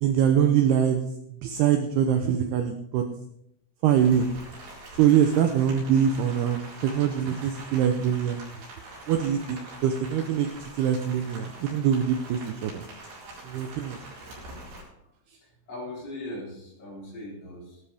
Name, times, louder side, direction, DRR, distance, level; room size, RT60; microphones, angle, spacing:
voice 1, 0.0-1.0 1.4-3.0 3.8-4.3 5.0-8.4 9.1-10.5 10.8-12.8 13.4-14.0, right 9 dB, 85° right, 5 dB, 2.3 m, -23 dB
Rain, 3.9-14.8, right 2 dB, 65° right, 6.5 m, -44 dB
voice 2, 15.4-17.8, left 1 dB, 30° left, -4 dB, 4.4 m, -39 dB
17.5 x 13.0 x 3.5 m, 0.79 s
omnidirectional pair, 5.5 m